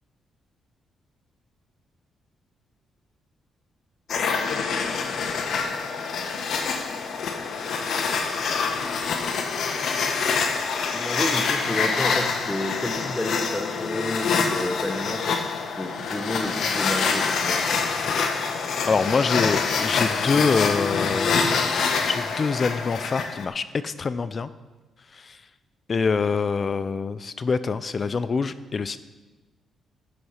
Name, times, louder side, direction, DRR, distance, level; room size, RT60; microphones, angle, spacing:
sound 1, 4.1-23.5, left 5 dB, 65° left, 1.1 m, -26 dB
voice 1, 10.9-17.6, left 1 dB, 10° left, 2 dB, 0.9 m, -31 dB
voice 2, 18.8-24.5 25.1-25.5 25.9-29.0, left 5 dB, 35° left, 14 dB, 0.4 m, -25 dB
9.9 x 8.1 x 5.7 m, 1.2 s
cardioid pair, 125°, 0 cm